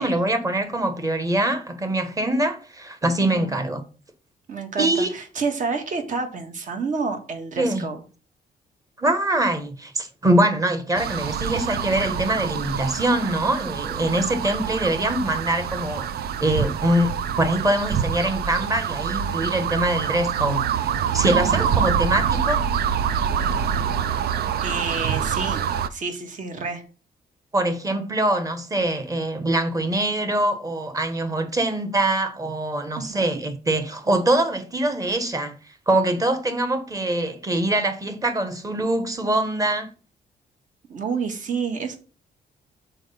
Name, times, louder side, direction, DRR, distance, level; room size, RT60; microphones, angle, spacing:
voice 1, 0.0-3.8 4.8-5.1 7.6-7.8 9.0-16.1 16.4-22.7 27.5-35.6 35.9-39.9, right 1 dB, 20° right, 1.2 m, -23 dB
voice 2, 3.2-3.6 4.5-8.0 21.3-21.7 24.6-25.6 25.9-26.8 33.0-33.4 40.9-42.0, right 4 dB, 50° right, 1.6 m, -29 dB
sound 1, 11.0-25.9, right 8 dB, 75° right, 0.6 m, -26 dB
6.2 x 4.8 x 5.5 m
cardioid pair, 135°, 16 cm